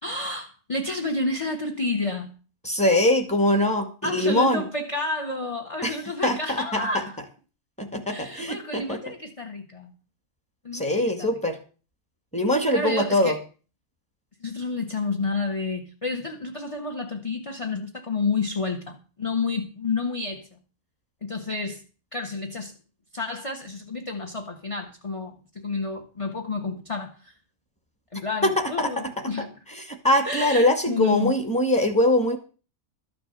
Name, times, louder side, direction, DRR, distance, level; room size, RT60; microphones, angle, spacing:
voice 1, 0.0-2.3 4.0-7.2 8.1-9.9 10.6-11.4 12.7-13.4 14.4-20.5 21.2-21.8 22.1-22.7 23.1-27.3 28.1-29.5 30.2-31.4, left 3 dB, 25° left, 1.4 m, -30 dB
voice 2, 2.6-4.6 5.8-5.9 6.2-6.8 7.8-9.0 10.7-11.6 12.3-13.4 28.4-28.9 29.9-32.4, left 1 dB, 5° left, 2.1 m, -22 dB
13.5 x 6.8 x 7.8 m
omnidirectional pair, 1.5 m